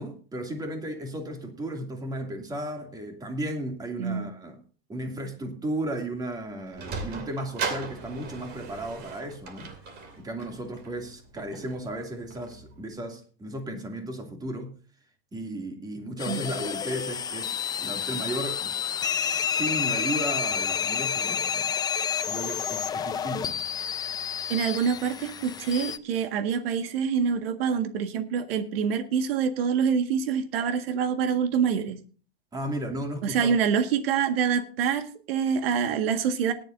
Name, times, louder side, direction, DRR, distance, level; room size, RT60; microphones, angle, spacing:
voice 1, 0.0-4.6 4.9-9.7 10.2-14.7 15.3-18.8 19.2-21.7 22.2-23.6 32.5-33.5, right 1 dB, 15° right, 2.5 m, -35 dB
Sliding door, 6.3-12.9, right 4 dB, 35° right, 2.7 m, -38 dB
sound 1, 16.2-26.0, left 8 dB, 15° left, 0.5 m, -30 dB
voice 2, 24.5-32.0 33.2-36.5, right 7 dB, 75° right, 1.8 m, -26 dB
19.0 x 11.0 x 2.6 m
supercardioid pair, 145°, 30 cm